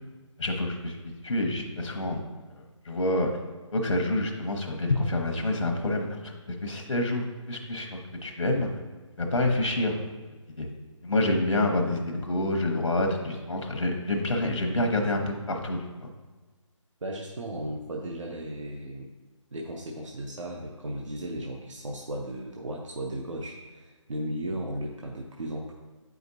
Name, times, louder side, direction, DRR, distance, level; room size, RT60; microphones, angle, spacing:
voice 1, 0.4-2.2 2.8-3.3 3.7-8.7 9.2-10.0 10.6-10.7 11.0-16.1, left 1 dB, 75° left, 3 dB, 0.9 m, -27 dB
voice 2, 17.0-19.1 19.5-25.7, right 1 dB, 70° right, 0 dB, 0.8 m, -35 dB
7.8 x 5.0 x 2.7 m, 1.3 s
figure-of-eight pair, 175°, 16 cm